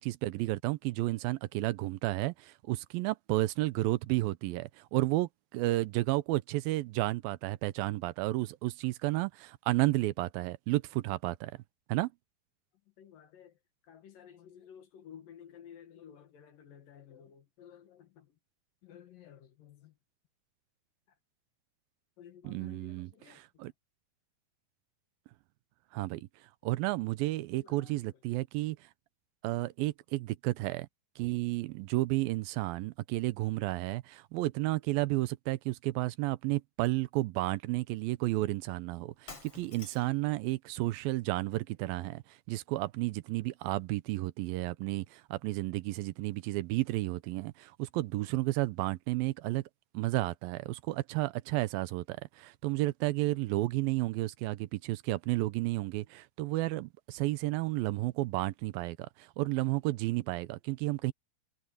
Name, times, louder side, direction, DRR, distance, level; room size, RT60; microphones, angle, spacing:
voice 1, 0.0-11.5 11.9-12.1 22.4-23.1 23.6-23.7 25.9-26.3 26.6-28.9 29.4-30.9 31.2-49.6 49.9-61.1, right 18 dB, 85° right, 2.4 m, -32 dB
voice 2, 12.9-13.6 13.8-18.4 18.8-20.0 21.1-21.2 22.2-23.7 27.6-28.2 29.6-29.7, left 9 dB, 70° left, 3.3 m, -54 dB
Shatter, 39.3-40.3, left 4 dB, 40° left, 5.4 m, -49 dB
omnidirectional pair, 4.3 m